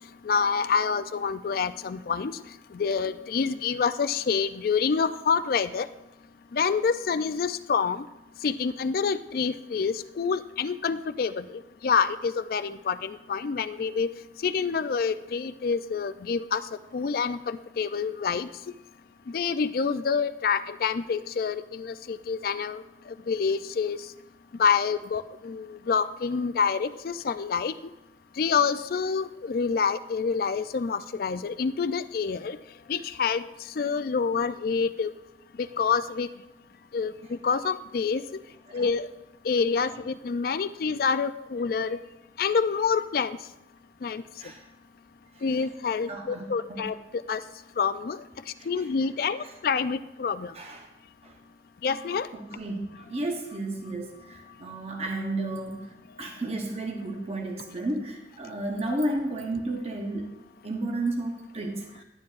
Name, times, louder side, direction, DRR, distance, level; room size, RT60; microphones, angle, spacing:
voice 1, 0.3-2.3 2.7-5.9 6.5-8.0 8.4-11.4 11.8-14.1 14.4-16.6 16.9-18.5 19.3-22.8 23.3-24.0 24.6-27.7 28.4-32.6 32.9-33.4 33.8-35.1 35.8-36.3 36.9-37.1 37.4-38.2 38.7-39.1 39.5-42.0 42.4-43.4 44.0-44.2 45.4-46.9 47.3-47.4 47.8-48.2 48.7-50.5 51.8-52.3, left 5 dB, 55° left, 13 dB, 0.4 m, -27 dB
voice 2, 46.1-46.8 48.6-48.7 49.4-49.5 50.5-50.9 51.2-51.4 52.3-60.4 60.6-62.0, right 2 dB, 35° right, 2 dB, 0.9 m, -33 dB
11.0 x 9.4 x 2.5 m, 0.97 s
head